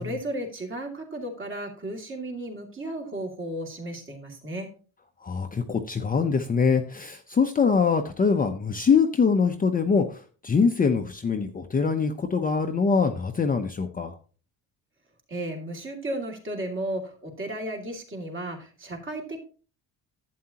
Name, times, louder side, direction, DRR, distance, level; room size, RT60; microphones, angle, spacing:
voice 1, 0.0-4.7 15.3-19.4, right 1 dB, 30° right, 1 dB, 2.5 m, -34 dB
voice 2, 5.2-14.2, left 5 dB, 20° left, 5 dB, 0.6 m, -23 dB
11.5 x 8.5 x 2.9 m, 0.38 s
cardioid pair, 135°, 38 cm